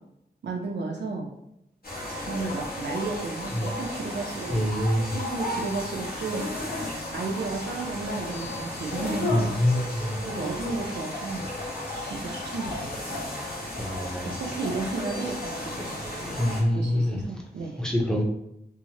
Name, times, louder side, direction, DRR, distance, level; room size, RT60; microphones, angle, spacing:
voice 1, 0.4-1.3 2.2-4.6 5.0-6.5 7.1-9.5 10.2-11.5 12.0-13.3 14.2-16.0 16.7-17.9, right 3 dB, 80° right, 0 dB, 0.4 m, -33 dB
sound 1, 1.8-16.6, left 1 dB, 60° left, 0.9 m, -34 dB
voice 2, 4.5-5.2 9.3-10.2 13.8-14.3 16.0-17.2 17.8-18.2, left 1 dB, 5° left, -1 dB, 0.6 m, -25 dB
2.8 x 2.1 x 2.8 m, 0.81 s
wide cardioid pair, 95°, 18 cm